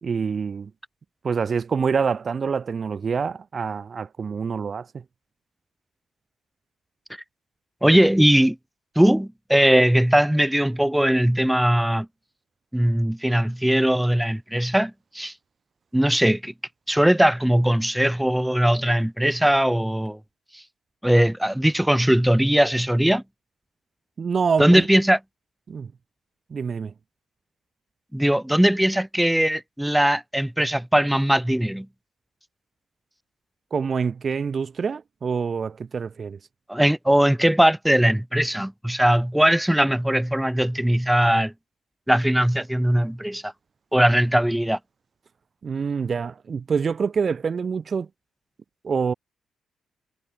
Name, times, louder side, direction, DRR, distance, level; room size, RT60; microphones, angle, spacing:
voice 1, 0.0-0.7 1.2-5.0 24.2-24.9 25.7-25.9 26.5-26.9 33.7-36.4 45.6-48.1 48.8-49.1, right 5 dB, 45° right, 1.1 m, -26 dB
voice 2, 7.8-8.6 8.9-12.1 12.7-15.3 15.9-16.5 16.9-20.2 20.5-20.6 21.0-23.2 24.6-25.2 28.1-31.9 36.7-41.5 42.1-43.5 43.9-44.8, equal, 5° right, 1.4 m, -20 dB
cardioid pair, 75°, 0 cm